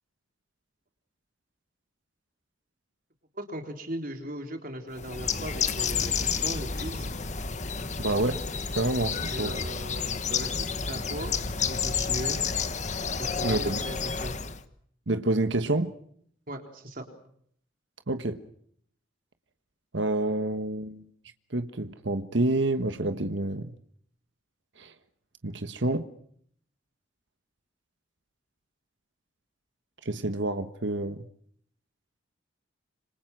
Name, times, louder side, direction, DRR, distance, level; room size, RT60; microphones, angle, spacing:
voice 1, 3.4-7.0 9.3-11.4 11.7-12.4 13.2-14.4 16.5-17.1, equal, 45° right, 3.8 m, -38 dB
Bird, 5.0-14.6, left 6 dB, 35° left, 1.4 m, -30 dB
voice 2, 8.0-8.4 8.7-9.6 13.4-13.8 15.1-15.9 18.1-18.4 19.9-21.0 21.5-23.7 24.8-24.9 25.4-26.1 30.0-31.2, right 2 dB, 70° right, 1.3 m, -28 dB
27.5 x 26.5 x 6.1 m
head